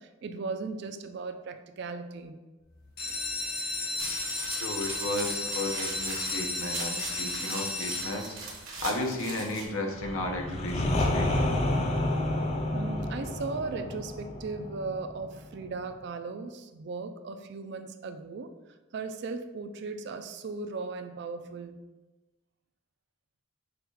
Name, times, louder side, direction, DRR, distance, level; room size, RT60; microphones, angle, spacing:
voice 1, 0.0-2.4 12.7-18.5 18.9-21.8, right 4 dB, 55° right, 8 dB, 0.3 m, -37 dB
sound 1, 2.8-8.6 9.2-9.7 10.1-10.2 10.4-10.5 10.9-11.1, left 2 dB, 50° left, 0.9 m, -34 dB
sound 2, 4.0-9.7, right 4 dB, 70° right, 1.0 m, -40 dB
voice 2, 4.5-11.6, left 1 dB, 80° left, 2 dB, 0.8 m, -34 dB
sound 3, 9.9-15.7, left 1 dB, 30° left, 0.5 m, -30 dB
4.7 x 2.3 x 4.6 m, 1.2 s
head